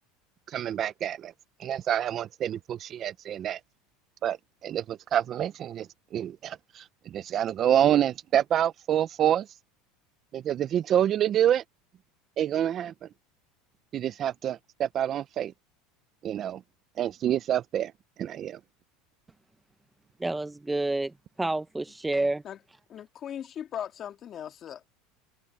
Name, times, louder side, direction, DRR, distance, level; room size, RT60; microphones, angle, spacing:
voice 1, 0.5-1.3 1.6-3.6 4.2-4.4 4.6-9.5 10.3-11.6 12.4-12.9 13.9-15.5 16.2-16.6 17.0-17.9 18.2-18.6, right 10 dB, 35° right, 0.6 m, -27 dB
voice 2, 20.2-21.1 21.4-22.4, right 2 dB, 5° right, 1.1 m, -28 dB
voice 3, 22.9-24.8, left 9 dB, 35° left, 2.1 m, -38 dB
supercardioid pair, 140°, 0 cm